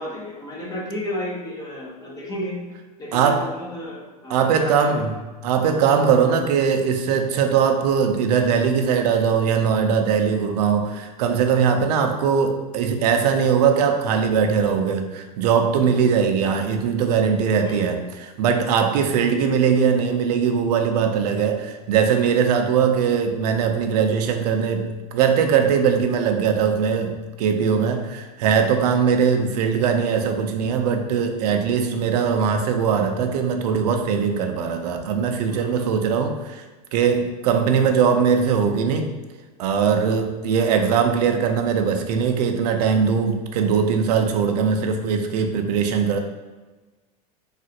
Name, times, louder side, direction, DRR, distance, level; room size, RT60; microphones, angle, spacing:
voice 1, 0.0-2.6 3.0-5.1 5.6-5.8 17.6-17.9 35.5-35.9, left 1 dB, 20° left, -3 dB, 0.6 m, -33 dB
voice 2, 3.1-3.5 4.3-5.1 5.4-36.6 36.9-39.1 39.6-46.2, right 6 dB, 90° right, 6 dB, 0.4 m, -20 dB
3.1 x 2.4 x 2.8 m, 1.2 s
supercardioid pair, 140°, 20 cm